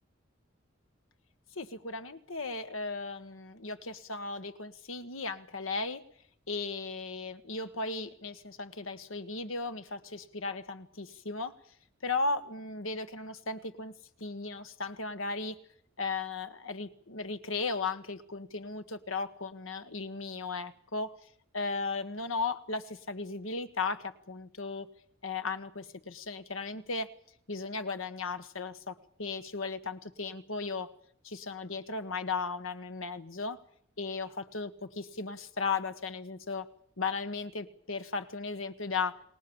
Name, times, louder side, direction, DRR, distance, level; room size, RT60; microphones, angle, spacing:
voice 1, 1.6-6.0 6.5-11.5 12.0-13.9 14.2-15.6 16.0-21.1 21.5-24.9 25.2-27.1 27.5-28.9 29.2-30.9 31.2-33.6 34.0-36.7 37.0-39.2, left 4 dB, 90° left, 10 dB, 1.6 m, -36 dB
29.5 x 19.5 x 7.2 m, 0.66 s
head